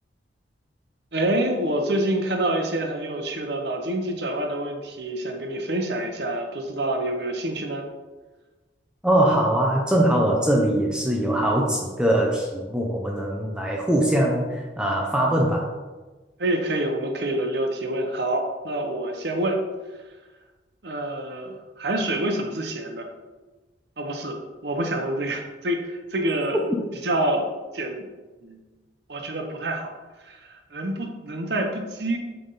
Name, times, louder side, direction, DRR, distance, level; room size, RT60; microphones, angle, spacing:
voice 1, 1.1-7.9 16.4-19.6 20.8-23.1 24.0-26.6 27.0-27.4 27.7-28.0 28.4-28.7 29.1-29.9 30.2-32.2, right 1 dB, 65° right, 3 dB, 0.9 m, -27 dB
voice 2, 9.0-15.7, right 1 dB, 5° right, -1 dB, 0.6 m, -22 dB
7.8 x 3.5 x 4.0 m, 1.2 s
head